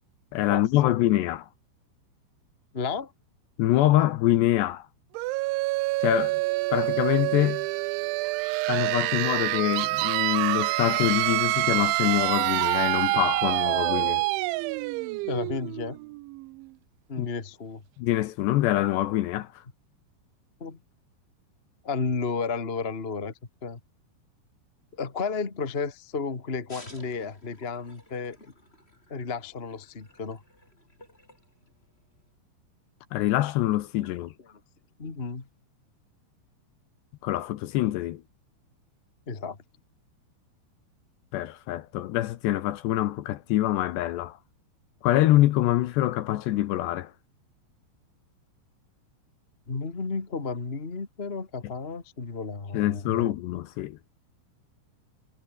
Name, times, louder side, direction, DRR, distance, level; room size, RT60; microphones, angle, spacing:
voice 1, 0.3-1.5 3.6-4.9 6.0-6.4 6.7-7.7 8.7-14.2 17.2-17.3 18.0-19.5 33.1-34.3 37.2-38.2 41.3-44.4 45.0-47.1 52.7-54.0, left 15 dB, 75° left, 3.0 m, -25 dB
voice 2, 2.7-3.1 15.3-16.0 17.1-17.8 20.6-20.8 21.8-23.3 23.6-23.8 25.0-28.5 29.1-30.4 34.0-34.1 34.5-34.6 35.0-35.5 39.3-39.6 49.7-53.3, left 4 dB, 45° left, 0.7 m, -32 dB
sound 1, 5.1-16.7, right 22 dB, 85° right, 3.0 m, -27 dB
sound 2, 26.7-32.3, left 1 dB, 10° left, 8.0 m, -53 dB
omnidirectional pair, 5.5 m